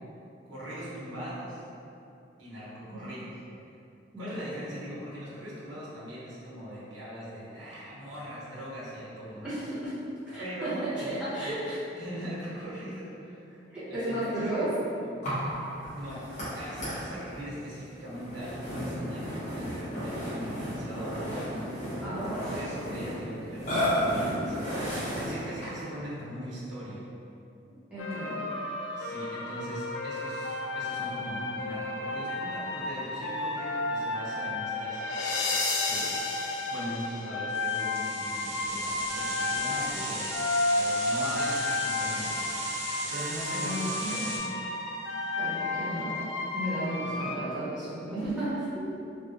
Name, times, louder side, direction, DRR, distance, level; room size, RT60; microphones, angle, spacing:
voice 1, 0.4-1.6 2.4-3.3 4.2-9.5 10.4-11.5 12.0-14.6 15.7-16.3 16.6-21.8 22.3-27.1 28.9-35.0 35.8-36.1 36.7-40.4 40.7-42.6 43.1-44.3 47.0-47.2, equal, 75° right, -9 dB, 1.0 m, -40 dB
voice 2, 9.4-9.9 10.3-11.8 13.7-14.7 22.0-22.6 27.9-28.4 43.6-44.5 45.4-46.2 46.5-48.9, right 1 dB, 5° right, -14 dB, 1.2 m, -34 dB
Burping eructation, 15.2-25.9, equal, 40° left, 1.1 m, -33 dB
sound 1, 28.0-47.4, left 2 dB, 90° left, 0.3 m, -32 dB
sound 2, 37.5-44.4, right 2 dB, 35° right, 0.5 m, -37 dB
3.4 x 2.3 x 2.5 m, 2.7 s
head